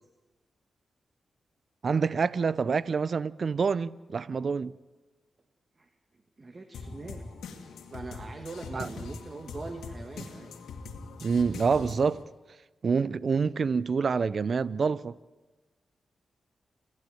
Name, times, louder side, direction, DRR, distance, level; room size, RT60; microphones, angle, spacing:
voice 1, 1.8-4.7 8.7-8.9 11.2-12.2 12.8-15.2, right 5 dB, 60° right, 0.6 m, -27 dB
voice 2, 5.8-7.2 7.5-10.5, right 3 dB, 40° right, 1.6 m, -43 dB
sound 1, 6.7-12.2, left 4 dB, 85° left, 2.1 m, -42 dB
27.5 x 12.0 x 9.3 m
cardioid pair, 50°, 0 cm